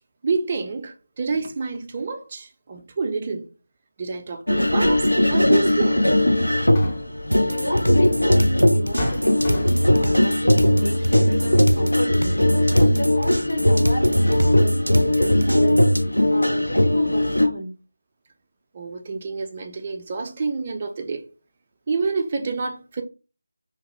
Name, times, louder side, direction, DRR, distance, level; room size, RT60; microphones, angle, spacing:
voice 1, 0.2-3.5 4.0-6.0 18.7-21.3 21.9-23.0, right 4 dB, 30° right, 0.4 m, -28 dB
sound 1, 4.5-17.5, left 1 dB, 85° left, 0.5 m, -19 dB
sound 2, 6.7-7.3 8.3-8.4 9.0-10.0, left 1 dB, 25° left, 0.7 m, -30 dB
sound 3, 7.3-16.0, equal, 90° right, 0.4 m, -28 dB
voice 2, 7.5-9.7 10.0-12.4 12.8-17.7, equal, 55° left, 1.2 m, -31 dB
2.8 x 2.1 x 3.0 m
figure-of-eight pair, 160°, 0 cm